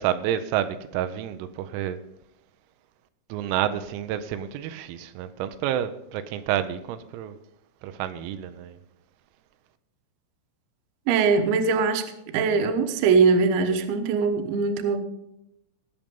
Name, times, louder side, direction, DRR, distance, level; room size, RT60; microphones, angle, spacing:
voice 1, 0.0-2.0 3.3-7.4 7.8-8.8, right 11 dB, 90° right, 3.5 m, -29 dB
voice 2, 11.1-15.0, right 5 dB, 75° right, 3.3 m, -22 dB
19.5 x 7.5 x 5.3 m
omnidirectional pair, 6.0 m